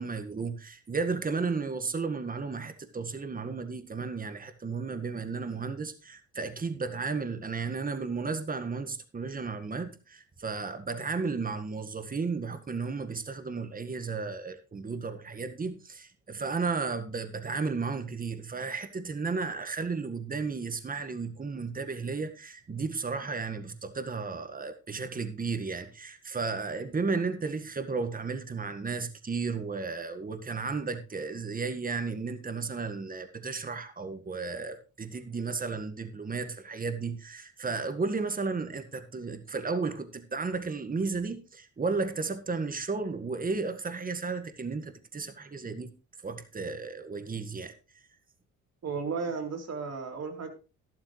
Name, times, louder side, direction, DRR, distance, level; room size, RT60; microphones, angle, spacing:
voice 1, 0.0-45.9 46.2-47.7, right 4 dB, 30° right, 1.7 m, -33 dB
voice 2, 48.8-50.5, right 5 dB, 60° right, 3.4 m, -34 dB
12.5 x 12.0 x 3.2 m
cardioid pair, 90°, 30 cm